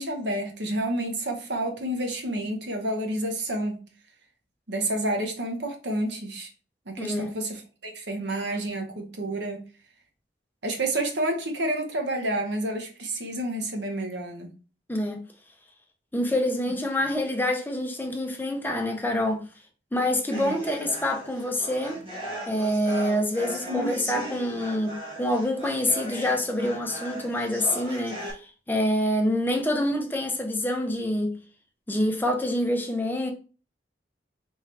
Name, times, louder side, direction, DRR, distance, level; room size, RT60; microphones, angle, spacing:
voice 1, 0.0-3.8 4.7-6.5 6.9-9.6 10.6-14.5 20.3-20.6 23.7-24.3, right 1 dB, 75° right, 1.0 m, -29 dB
voice 2, 7.0-7.3 14.9-15.2 16.1-19.4 19.9-22.0 22.5-31.3 31.9-33.3, left 1 dB, 10° left, 0.7 m, -26 dB
sound 1, 20.3-28.3, right 1 dB, 30° right, 1.7 m, -38 dB
4.4 x 3.6 x 3.3 m
head